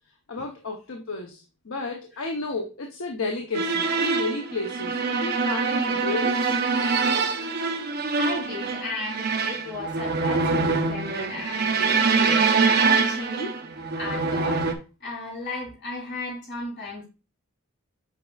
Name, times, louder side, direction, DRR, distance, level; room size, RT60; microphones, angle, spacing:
voice 1, 0.3-6.4, left 3 dB, 75° left, 0.8 m, -32 dB
sound 1, 3.5-14.7, right 4 dB, 50° right, 0.8 m, -24 dB
voice 2, 8.1-14.7 15.0-17.0, left 2 dB, 55° left, 4.1 m, -35 dB
8.4 x 4.9 x 2.4 m
head